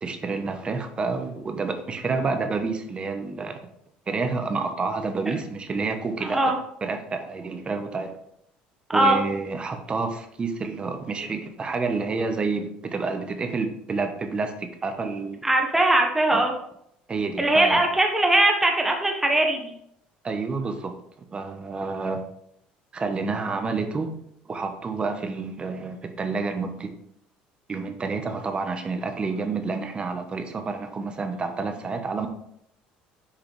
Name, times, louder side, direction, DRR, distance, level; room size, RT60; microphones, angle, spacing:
voice 1, 0.0-3.6 4.1-6.4 6.8-8.2 8.9-15.4 16.3-16.4 17.1-17.8 20.2-20.9 21.3-22.2 22.9-24.1 24.5-26.9 27.7-32.3, right 4 dB, 30° right, 6 dB, 1.1 m, -29 dB
voice 2, 6.2-6.6 8.9-9.2 15.4-16.5 17.4-19.7, right 1 dB, 10° right, 2 dB, 1.3 m, -20 dB
7.1 x 4.9 x 3.3 m, 0.73 s
supercardioid pair, 95°, 3 cm